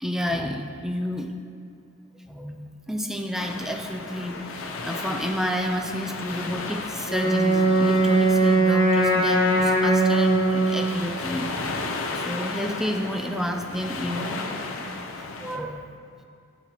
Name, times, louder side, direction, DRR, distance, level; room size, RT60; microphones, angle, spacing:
voice 1, 0.0-1.3 2.3-11.5 12.1-14.4 15.4-15.9, equal, ahead, 4 dB, 0.4 m, -30 dB
sound 1, 3.3-15.6, left 3 dB, 75° left, 0.6 m, -34 dB
Wind instrument woodwind instrument, 7.1-11.1, right 2 dB, 40° left, 1.6 m, -20 dB
11.5 x 5.7 x 3.0 m, 2.4 s
head